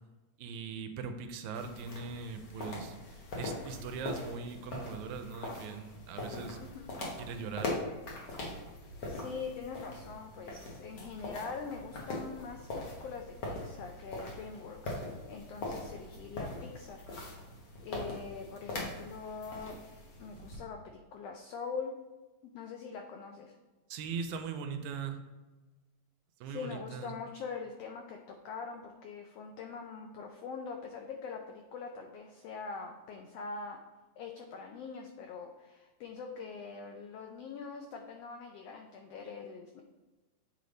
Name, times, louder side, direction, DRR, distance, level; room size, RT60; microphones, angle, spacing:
voice 1, 0.4-6.6 7.2-7.8 23.9-25.2 26.4-27.2, right 5 dB, 85° right, 7 dB, 1.9 m, -40 dB
sound 1, 1.5-20.6, left 2 dB, 60° left, 1.2 m, -42 dB
voice 2, 9.1-17.0 17.3-17.4 17.8-19.8 20.2-20.8 21.1-21.9 22.4-23.6 26.4-33.8 34.2-39.8, left 5 dB, 85° left, 3 dB, 1.4 m, -43 dB
8.5 x 3.3 x 3.9 m, 1.2 s
omnidirectional pair, 3.4 m